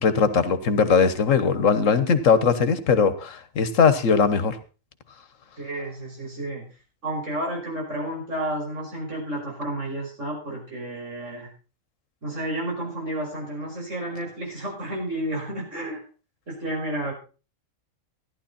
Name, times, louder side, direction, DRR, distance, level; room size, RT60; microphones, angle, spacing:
voice 1, 0.0-4.6, left 5 dB, 75° left, 13 dB, 1.5 m, -20 dB
voice 2, 5.6-6.6 7.0-11.5 12.2-16.0 16.5-17.1, right 1 dB, 70° right, -2 dB, 6.1 m, -31 dB
14.5 x 11.0 x 4.2 m, 0.35 s
omnidirectional pair, 1.3 m